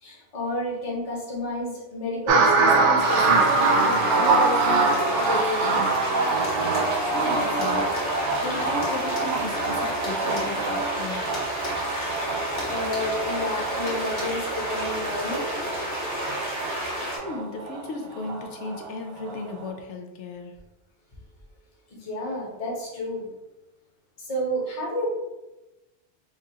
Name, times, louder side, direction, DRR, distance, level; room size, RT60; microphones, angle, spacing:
voice 1, 0.0-5.9 12.7-15.5 21.9-23.3 24.2-25.1, left 1 dB, 35° left, -5 dB, 1.0 m, -31 dB
sound 1, 2.3-18.9 19.3-19.7, right 3 dB, 85° right, 0.9 m, -25 dB
sound 2, 3.0-17.2, equal, 20° right, 0.7 m, -31 dB
sound 3, 6.4-6.9 7.6-8.1 8.8-10.5 11.3-11.8 12.0-12.2 12.6-13.1 13.9-14.2, left 2 dB, 60° left, 1.3 m, -36 dB
voice 2, 7.1-8.0 8.4-11.2 17.2-20.5, left 3 dB, 80° left, 3 dB, 0.9 m, -35 dB
4.6 x 2.4 x 2.8 m, 1.0 s
omnidirectional pair, 1.2 m